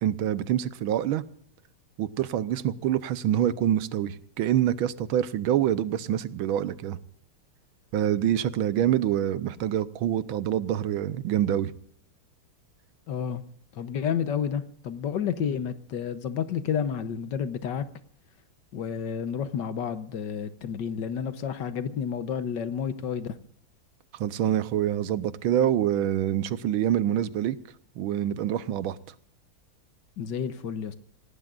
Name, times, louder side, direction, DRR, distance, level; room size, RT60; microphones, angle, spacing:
voice 1, 0.0-1.2 2.0-7.0 7.9-11.7 24.1-27.6 28.0-29.0, right 11 dB, 75° right, 1.6 m, -26 dB
voice 2, 13.1-13.4 13.8-17.8 18.7-23.4 30.2-30.9, left 7 dB, 60° left, 1.4 m, -30 dB
27.0 x 18.0 x 2.5 m
omnidirectional pair, 2.4 m